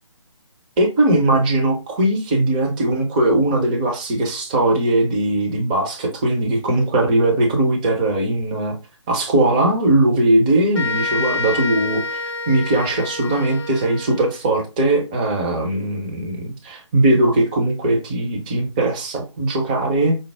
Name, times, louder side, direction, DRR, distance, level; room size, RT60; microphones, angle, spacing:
voice 1, 0.8-8.7 9.1-12.2 12.5-20.2, right 1 dB, 15° right, 2 dB, 0.6 m, -19 dB
sound 1, 10.7-14.4, left 3 dB, 55° left, 0.8 m, -27 dB
5.2 x 2.0 x 3.3 m, 0.29 s
figure-of-eight pair, 145°, 16 cm